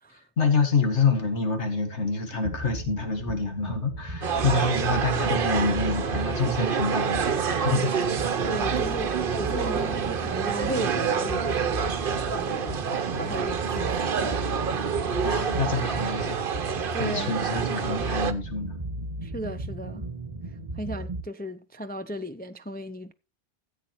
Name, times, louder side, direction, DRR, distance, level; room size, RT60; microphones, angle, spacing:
voice 1, 0.4-7.3 7.6-7.9 15.2-16.4 17.0-19.1, left 4 dB, 80° left, 2.2 m, -27 dB
sound 1, 2.4-21.2, right 1 dB, 30° right, 1.8 m, -36 dB
sound 2, 4.2-18.3, right 6 dB, 55° right, 1.0 m, -27 dB
voice 2, 8.5-12.0 12.3-12.9 13.2-15.0 16.9-17.3 19.2-20.1 20.7-23.1, equal, 15° left, 0.3 m, -36 dB
14.5 x 8.1 x 3.0 m
omnidirectional pair, 1.2 m